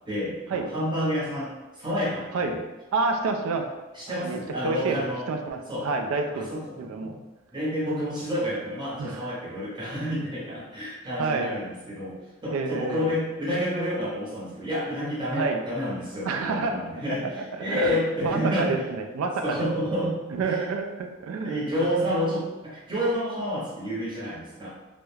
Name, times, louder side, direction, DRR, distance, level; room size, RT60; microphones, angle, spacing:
voice 1, 0.1-2.6 3.9-5.3 5.7-5.9 6.3-7.2 7.5-18.8 19.4-20.6 21.4-24.7, equal, 20° right, -7 dB, 0.7 m, -29 dB
voice 2, 2.9-3.7 4.1-4.4 4.6-5.0 5.3-6.5 6.8-7.1 9.0-9.3 11.2-11.5 12.5-13.1 15.3-15.6 16.3-16.9 17.5-19.6 20.3-21.7, right 4 dB, 70° right, 4 dB, 0.3 m, -28 dB
2.3 x 2.1 x 3.1 m, 1.1 s
head